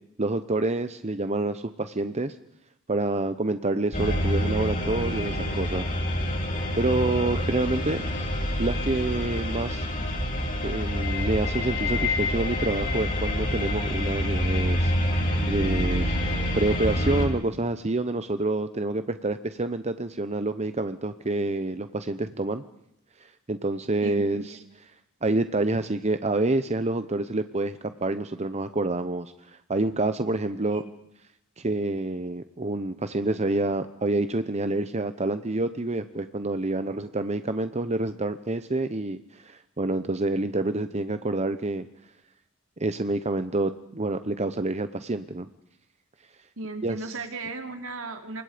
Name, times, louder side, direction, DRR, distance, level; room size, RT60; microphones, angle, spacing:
voice 1, 0.2-2.4 2.9-5.9 6.5-8.0 8.6-9.9 10.6-14.9 15.5-16.1 16.6-22.6 23.2-24.6 25.2-30.8 31.6-41.9 42.8-45.5 46.8-47.2, right 2 dB, 30° right, 10 dB, 0.9 m, -28 dB
sound 1, 3.9-17.3, left 1 dB, 40° left, 7.2 m, -27 dB
voice 2, 24.0-24.4 30.7-30.9 46.6-48.4, right 3 dB, 65° right, 5 dB, 3.3 m, -36 dB
28.5 x 24.5 x 5.2 m, 0.81 s
head